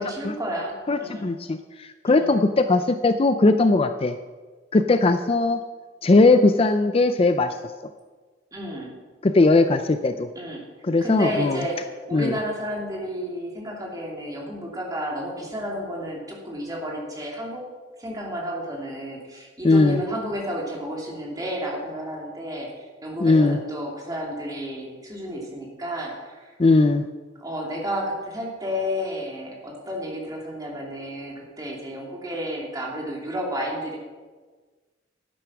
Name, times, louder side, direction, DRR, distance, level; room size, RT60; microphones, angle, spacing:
voice 1, 0.0-1.3 2.1-2.3 8.5-8.9 10.3-10.6 11.0-17.6 18.0-22.7 23.0-26.5 27.4-34.0, equal, 20° right, -2 dB, 2.8 m, -31 dB
voice 2, 0.9-4.2 4.7-5.6 6.0-7.6 9.2-10.3 10.8-11.6 12.1-12.4 19.6-20.0 23.2-23.6 26.6-27.1, left 3 dB, 30° left, 9 dB, 0.4 m, -19 dB
12.0 x 9.4 x 5.9 m, 1.4 s
head